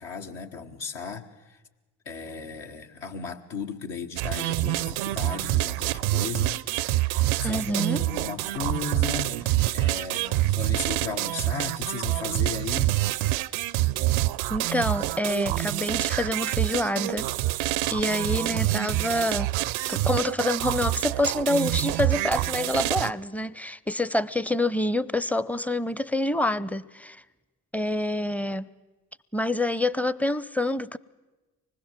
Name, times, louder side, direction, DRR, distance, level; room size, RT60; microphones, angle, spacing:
voice 1, 0.0-1.6 2.1-12.9, left 5 dB, 65° left, 2 dB, 1.8 m, -36 dB
sound 1, 4.2-23.1, right 17 dB, 75° right, 0.6 m, -26 dB
voice 2, 7.4-8.0 14.5-17.3 17.9-19.5 19.9-27.2 27.7-28.7 29.3-31.0, left 1 dB, 5° left, 18 dB, 0.7 m, -27 dB
25.0 x 20.0 x 7.4 m, 1.2 s
hypercardioid pair, 45°, 47 cm